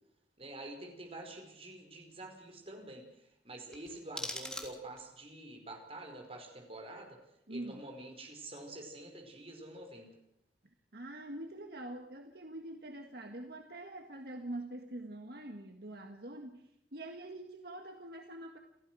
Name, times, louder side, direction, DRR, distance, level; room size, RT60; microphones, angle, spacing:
voice 1, 0.4-7.2 7.5-10.1, right 1 dB, 35° right, 3 dB, 5.1 m, -47 dB
sound 1, 3.7-5.2, left 1 dB, 5° left, 3.5 m, -43 dB
voice 2, 7.5-7.8 10.6-18.6, right 1 dB, 60° right, 4 dB, 1.7 m, -45 dB
29.0 x 14.5 x 6.3 m, 0.80 s
head